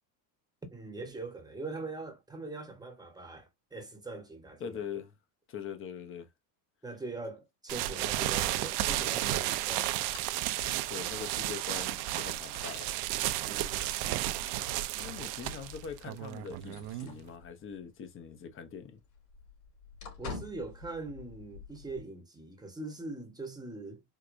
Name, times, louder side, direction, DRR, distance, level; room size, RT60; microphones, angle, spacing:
voice 1, 0.7-4.8 6.8-9.9 13.4-13.9 20.2-24.0, right 3 dB, 10° right, 0.8 m, -42 dB
voice 2, 4.6-5.1 5.5-6.3 10.9-13.0 15.0-19.0, left 7 dB, 25° left, 0.6 m, -42 dB
sound 1, 7.7-17.3, right 14 dB, 55° right, 0.6 m, -33 dB
sound 2, 9.1-17.8 18.1-18.2 18.5-22.0, left 4 dB, 65° left, 2.6 m, -50 dB
4.7 x 2.2 x 2.5 m
supercardioid pair, 120°, 49 cm